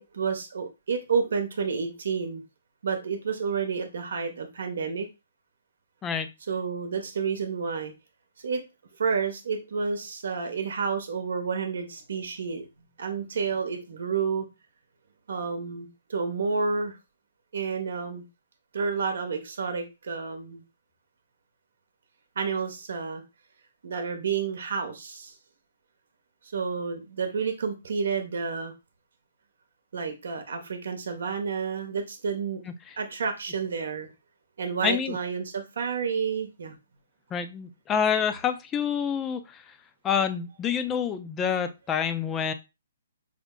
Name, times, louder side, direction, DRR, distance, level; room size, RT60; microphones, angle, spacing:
voice 1, 0.0-2.4 2.8-5.1 6.5-7.9 8.4-8.6 9.0-12.7 13.0-14.4 15.3-16.9 17.5-18.2 18.7-20.6 22.4-23.2 23.8-25.3 26.5-28.7 29.9-32.6 33.0-34.1 34.6-36.7, right 5 dB, 70° right, 6 dB, 0.9 m, -30 dB
voice 2, 34.8-35.2 37.3-39.8 40.0-42.5, left 7 dB, 20° left, 10 dB, 0.5 m, -27 dB
5.0 x 2.0 x 3.7 m, 0.25 s
hypercardioid pair, 140°, 0 cm